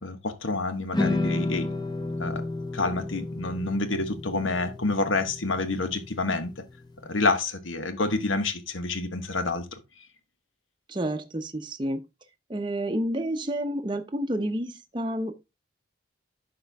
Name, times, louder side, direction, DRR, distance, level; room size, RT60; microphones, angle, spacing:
voice 1, 0.0-1.7 2.2-2.4 2.7-6.5 7.0-9.8, left 3 dB, 75° left, 1.2 m, -28 dB
sound 1, 0.9-7.2, left 2 dB, 20° left, 0.8 m, -32 dB
voice 2, 10.9-12.0 12.5-15.3, right 1 dB, 25° right, 0.7 m, -29 dB
11.5 x 4.4 x 3.4 m
head